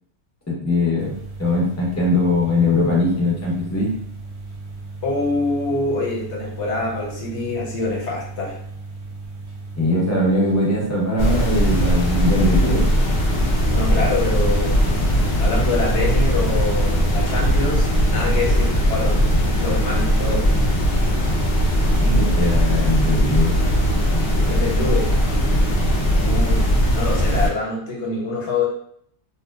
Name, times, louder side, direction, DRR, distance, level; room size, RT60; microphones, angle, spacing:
voice 1, 0.5-3.9 9.8-12.8 22.0-23.6, left 2 dB, 15° left, -5 dB, 0.6 m, -21 dB
sound 1, 1.0-19.3, right 3 dB, 80° right, 0.9 m, -36 dB
voice 2, 5.0-8.6 13.7-14.8 15.4-19.2 19.5-20.4 24.5-25.1 26.2-26.6 26.9-28.6, left 3 dB, 80° left, -2 dB, 1.1 m, -25 dB
sound 2, 11.2-27.5, equal, 60° left, 0.9 m, -19 dB
2.8 x 2.1 x 2.2 m, 0.67 s
omnidirectional pair, 1.2 m